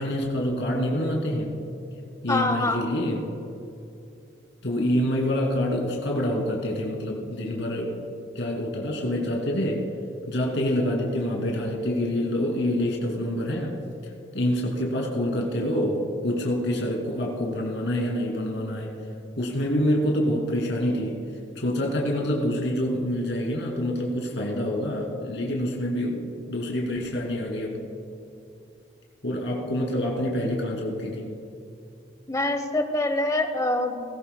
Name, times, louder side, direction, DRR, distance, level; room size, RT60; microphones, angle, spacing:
voice 1, 0.0-1.5 2.2-3.3 4.6-7.9 8.3-9.8 10.3-13.7 14.3-18.9 19.4-21.2 21.6-27.8 29.2-31.3, left 1 dB, 80° left, -2 dB, 2.5 m, -26 dB
voice 2, 2.3-2.8 32.3-34.0, left 2 dB, 20° left, 7 dB, 0.9 m, -25 dB
19.0 x 17.5 x 2.2 m, 2.7 s
head